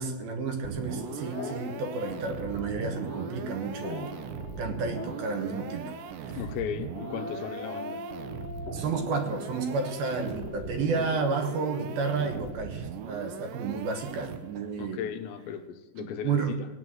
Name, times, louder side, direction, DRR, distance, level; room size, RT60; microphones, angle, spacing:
voice 1, 0.0-4.1 4.6-5.9 6.2-6.4 8.7-15.0 16.0-16.6, right 4 dB, 70° right, 2.8 m, -31 dB
sound 1, 0.6-14.7, right 7 dB, 85° right, 3.2 m, -40 dB
sound 2, 0.9-12.7, left 6 dB, 65° left, 2.3 m, -42 dB
voice 2, 6.3-8.0 14.8-16.6, left 9 dB, 85° left, 3.1 m, -36 dB
17.0 x 9.4 x 7.8 m
omnidirectional pair, 5.0 m